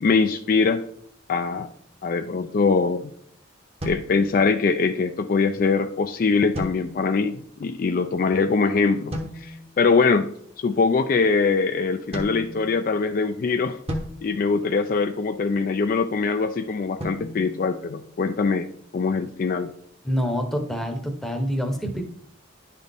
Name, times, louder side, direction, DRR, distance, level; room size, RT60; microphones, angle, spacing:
voice 1, 0.0-0.8 1.3-1.7 2.0-3.1 3.9-13.8 14.2-18.7 18.9-19.7, left 4 dB, 45° left, 8 dB, 0.3 m, -22 dB
sound 1, 3.8-4.9 6.5-7.4 9.1-9.8 12.1-13.2 13.9-15.3 17.0-18.5, equal, 30° right, 0.9 m, -36 dB
voice 2, 20.0-22.0, equal, ahead, 3 dB, 0.8 m, -26 dB
10.0 x 4.1 x 3.5 m, 0.63 s
head